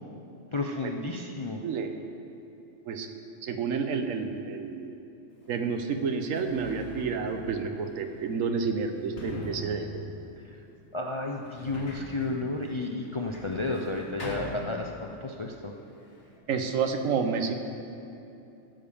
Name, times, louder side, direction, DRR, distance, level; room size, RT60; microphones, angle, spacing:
voice 1, 0.5-1.6 10.4-10.6 10.9-15.7, left 2 dB, 40° left, 1 dB, 0.4 m, -32 dB
voice 2, 2.9-4.9 5.5-10.1 16.5-17.5, right 5 dB, 85° right, 6 dB, 1.2 m, -30 dB
Sliding door, 5.4-5.5 6.1-15.3 15.6-16.4, left 1 dB, 60° left, 1.8 m, -43 dB
14.0 x 5.2 x 7.0 m, 2.7 s
omnidirectional pair, 1.3 m